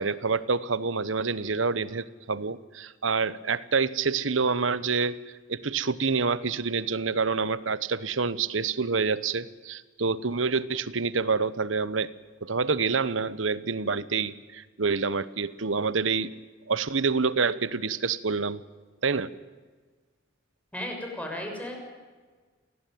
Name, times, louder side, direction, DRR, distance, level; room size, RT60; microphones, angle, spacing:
voice 1, 0.0-5.2 5.5-12.1 12.4-16.3 16.7-18.6 19.0-19.3, right 4 dB, 75° right, 17 dB, 1.1 m, -27 dB
voice 2, 20.7-21.8, left 1 dB, 5° left, 1 dB, 6.3 m, -34 dB
28.5 x 19.0 x 9.3 m, 1.4 s
head